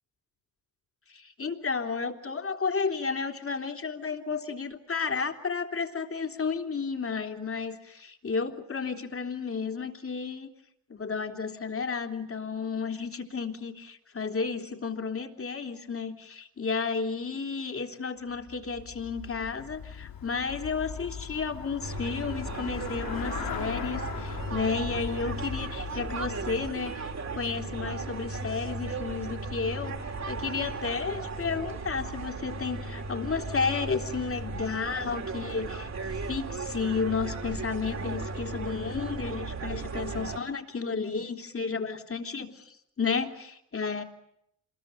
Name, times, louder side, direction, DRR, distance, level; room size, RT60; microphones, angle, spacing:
voice 1, 1.1-10.5 10.9-29.9 30.3-44.0, left 5 dB, 30° left, 5 dB, 3.5 m, -32 dB
Traffic noise roadway noise / Bicycle, 18.3-27.5, left 8 dB, 50° left, 4.7 m, -40 dB
sound 1, 21.8-40.4, right 3 dB, 35° right, 3.3 m, -36 dB
27.0 x 22.0 x 9.1 m, 0.74 s
hypercardioid pair, 65°, 44 cm